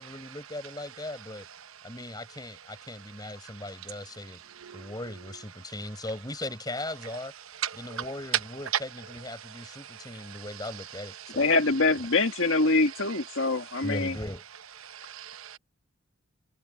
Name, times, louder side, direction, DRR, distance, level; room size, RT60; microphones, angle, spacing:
voice 1, 0.0-1.5 1.8-4.4 4.7-7.3 7.7-11.4 13.8-14.4, left 1 dB, 20° left, 6.3 m, -38 dB
voice 2, 4.6-4.9 7.6-8.0 9.7-10.4 14.8-15.6, right 10 dB, 80° right, 0.9 m, -39 dB
voice 3, 11.4-14.1, left 3 dB, 65° left, 1.9 m, -24 dB
head